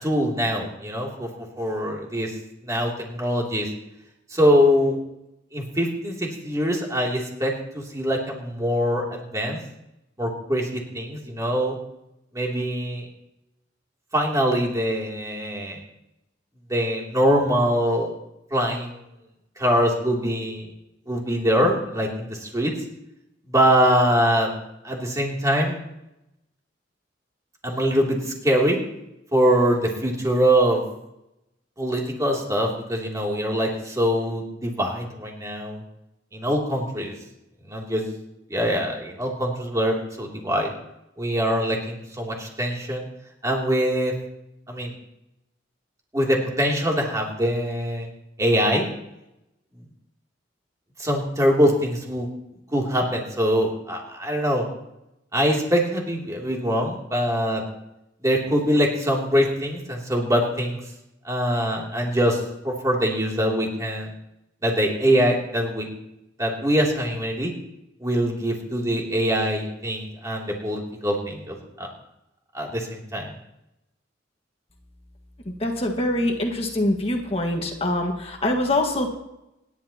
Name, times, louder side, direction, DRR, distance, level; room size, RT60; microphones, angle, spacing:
voice 1, 0.0-2.3 2.6-3.7 4.3-5.0 5.5-9.6 10.2-11.8 12.3-13.1 14.1-15.8 16.7-18.2 18.5-19.0 19.6-20.7 21.1-22.7 23.5-24.5 24.8-25.8 27.6-28.8 29.3-30.8 31.8-35.8 36.3-37.1 37.7-38.0 38.5-40.7 41.2-43.1 43.4-44.1 44.7-44.9 46.1-48.1 48.4-48.9 51.0-52.3 52.7-54.6 55.3-57.6 58.2-60.8 61.2-64.1 64.6-65.9 66.4-67.5 68.0-71.9 72.5-73.3, equal, 20° right, -2 dB, 2.9 m, -23 dB
voice 2, 75.6-79.1, left 1 dB, 30° left, 1 dB, 1.7 m, -24 dB
27.0 x 11.5 x 2.9 m, 0.87 s
head